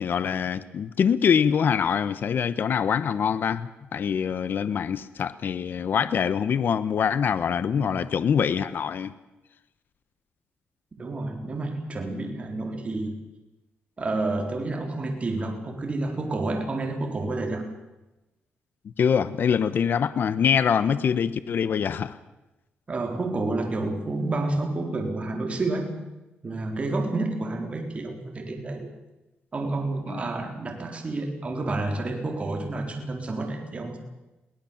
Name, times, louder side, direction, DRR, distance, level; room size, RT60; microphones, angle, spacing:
voice 1, 0.0-9.1 19.0-22.2 30.1-30.2, left 7 dB, 60° left, 14 dB, 1.0 m, -24 dB
voice 2, 11.0-13.2 14.0-17.7 22.9-25.9 26.4-28.9 29.5-34.0, right 2 dB, 30° right, 2 dB, 4.1 m, -29 dB
22.5 x 18.0 x 7.3 m, 1.0 s
cardioid pair, 105°, 4 cm